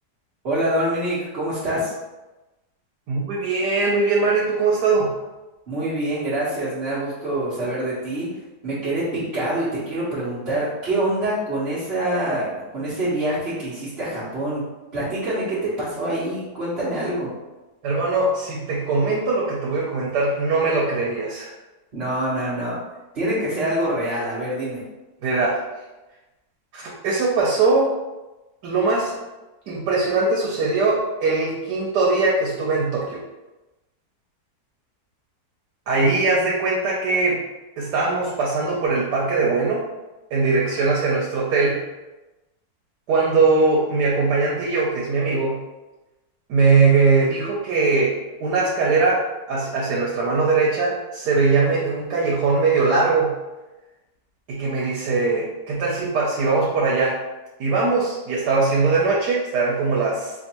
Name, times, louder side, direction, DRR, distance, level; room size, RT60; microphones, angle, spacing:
voice 1, 0.4-1.9 5.7-14.6 14.9-17.3 21.9-22.8 23.1-24.8, right 1 dB, 45° right, -12 dB, 1.2 m, -25 dB
voice 2, 3.1-5.1 17.8-21.5 25.2-25.6 26.7-27.9 28.6-29.2 29.7-33.2 35.9-37.4 37.8-39.8 40.3-41.8 43.1-45.6 46.5-53.4 54.5-57.2 57.6-60.3, right 3 dB, 85° right, -4 dB, 1.3 m, -21 dB
4.4 x 2.5 x 2.9 m, 1.1 s
omnidirectional pair, 1.7 m